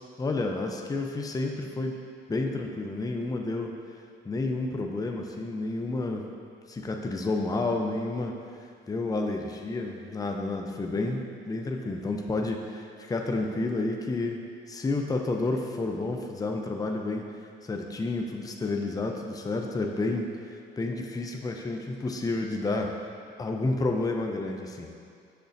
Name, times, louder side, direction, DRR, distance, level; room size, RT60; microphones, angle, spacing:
voice 1, 0.2-2.0 2.3-3.7 4.2-6.3 6.7-8.4 8.9-17.2 17.6-23.0 23.4-24.9, left 2 dB, 20° left, 2 dB, 0.6 m, -30 dB
6.7 x 6.5 x 2.6 m, 2.3 s
cardioid pair, 90°, 20 cm